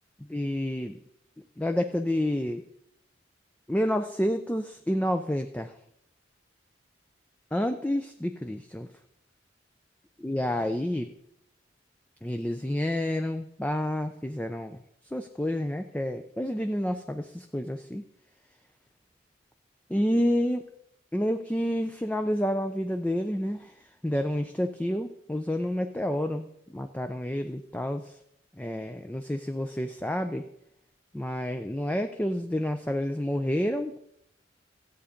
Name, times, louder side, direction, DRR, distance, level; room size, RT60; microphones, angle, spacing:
voice 1, 0.2-1.0 1.4-2.6 3.7-5.8 7.5-8.9 10.2-11.1 12.2-14.8 15.1-18.1 19.9-20.7 21.1-28.2 28.6-30.4 31.1-34.0, equal, 10° left, 6 dB, 0.5 m, -29 dB
14.0 x 8.3 x 5.1 m, 0.76 s
head